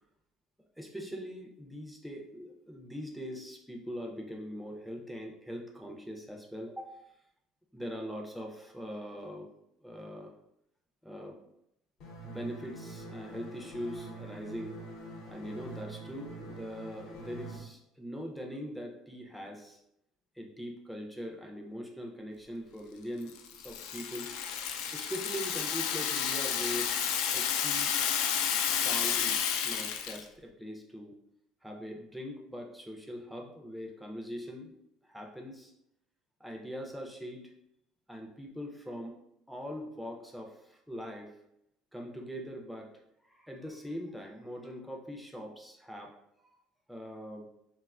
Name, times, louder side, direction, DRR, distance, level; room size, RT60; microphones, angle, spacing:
voice 1, 0.8-7.0 7.7-9.5 9.8-10.3 11.0-11.4 12.2-14.8 15.3-19.8 20.4-23.3 23.6-24.3 24.9-27.0 27.3-27.9 28.6-31.1 31.6-34.8 35.0-35.7 36.4-37.5 38.1-39.2 39.5-41.4 41.9-46.2 46.9-47.5, equal, ahead, 0 dB, 0.4 m, -42 dB
sound 1, 12.0-17.6, right 2 dB, 60° left, 0.7 m, -45 dB
Rattle (instrument), 23.3-30.2, left 8 dB, 80° left, 0.3 m, -31 dB
3.7 x 2.1 x 2.3 m, 0.79 s
cardioid pair, 170°, 0 cm